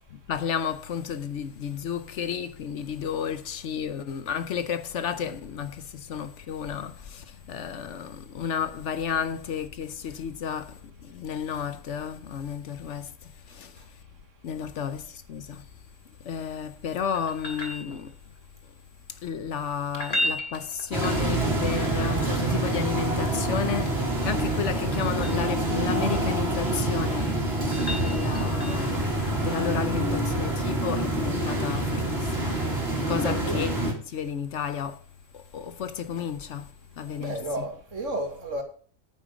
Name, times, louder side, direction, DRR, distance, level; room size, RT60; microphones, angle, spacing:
voice 1, 0.3-13.9 14.4-15.7 16.2-18.2 19.1-24.0 24.2-27.3 27.9-32.6 33.1-35.0 35.3-37.7, left 8 dB, 65° left, 1.0 m, -32 dB
sound 1, 17.1-18.4 19.8-21.7 23.8-25.5 26.9-29.0 31.7-31.8, left 1 dB, 50° left, 3.0 m, -35 dB
sound 2, 20.9-33.9, right 2 dB, 50° right, 2.8 m, -26 dB
voice 2, 33.2-33.6 37.1-38.6, right 1 dB, 65° right, 2.3 m, -32 dB
9.0 x 8.3 x 5.0 m
omnidirectional pair, 1.4 m